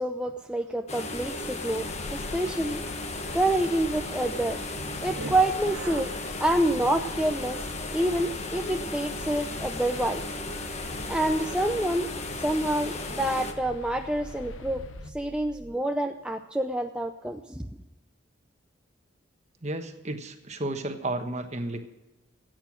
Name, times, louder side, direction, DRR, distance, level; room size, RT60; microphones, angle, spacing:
voice 1, 0.0-2.8 3.3-4.6 5.0-6.1 6.4-7.6 7.9-10.2 11.1-12.1 12.4-14.8 15.1-17.7, right 1 dB, 5° right, 4 dB, 0.5 m, -27 dB
sound 1, 0.9-13.5, left 2 dB, 35° left, 1.3 m, -35 dB
sound 2, 1.7-15.1, left 3 dB, 85° left, 0.7 m, -45 dB
sound 3, 4.7-15.9, right 2 dB, 70° right, 1.1 m, -44 dB
voice 2, 19.6-21.9, right 2 dB, 35° right, 7 dB, 1.3 m, -32 dB
15.5 x 9.1 x 6.2 m, 1.1 s
head